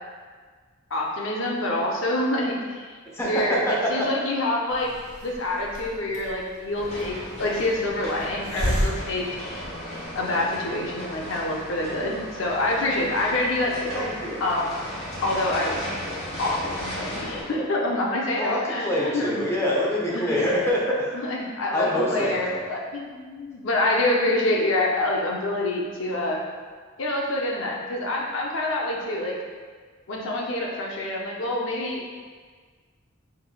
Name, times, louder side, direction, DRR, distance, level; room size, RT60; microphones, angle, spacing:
voice 1, 0.9-2.9 3.2-3.6 3.9-4.9 5.2-9.3 10.1-14.0 14.4-14.6 15.2-15.8 16.4-19.4 20.1-20.3 21.3-26.4 27.0-29.4 30.1-32.0, left 1 dB, 65° left, -2 dB, 0.6 m, -26 dB
voice 2, 3.0-4.1 13.9-14.4 18.3-21.1 21.7-22.6, equal, 15° left, -6 dB, 0.9 m, -25 dB
Hiss, 4.7-10.2, equal, 75° right, 1.5 m, -33 dB
sound 1, 6.7-17.4, equal, 30° left, 1.1 m, -36 dB
5.6 x 3.2 x 2.3 m, 1.5 s
head